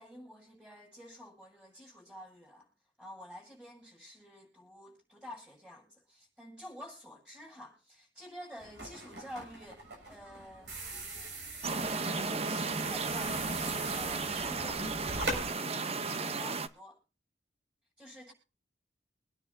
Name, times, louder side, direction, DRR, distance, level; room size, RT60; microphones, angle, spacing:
voice 1, 0.0-2.7 3.0-9.8 10.1-10.8 11.6-17.0 18.0-18.3, equal, 5° right, 7.0 m, -49 dB
sound 1, 8.6-15.4, right 2 dB, 65° right, 7.0 m, -41 dB
sound 2, 11.6-16.7, right 4 dB, 35° right, 0.8 m, -34 dB
25.0 x 9.8 x 2.7 m
head